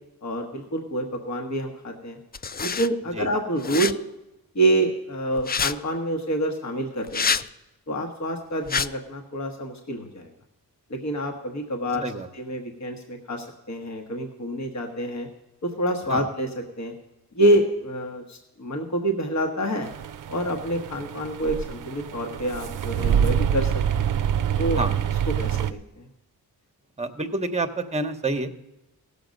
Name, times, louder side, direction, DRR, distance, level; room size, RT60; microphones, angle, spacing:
voice 1, 0.2-2.2 2.6-4.0 4.5-7.4 7.9-10.3 10.9-12.0 12.3-15.3 15.6-16.5 16.8-16.9 17.3-19.9 20.3-23.7 24.0-24.1 24.6-24.8 25.4-26.0, right 1 dB, 50° left, 3 dB, 1.3 m, -27 dB
sound 1, 2.3-2.9 3.6-3.9 5.4-5.7 7.0-7.5 8.7-8.9, left 5 dB, 25° left, 0.3 m, -26 dB
sound 2, 19.8-25.7, right 8 dB, 60° right, 0.5 m, -26 dB
voice 2, 27.0-28.6, right 2 dB, 20° right, 8 dB, 1.0 m, -28 dB
16.5 x 6.9 x 5.2 m, 0.95 s
cardioid pair, 80°, 37 cm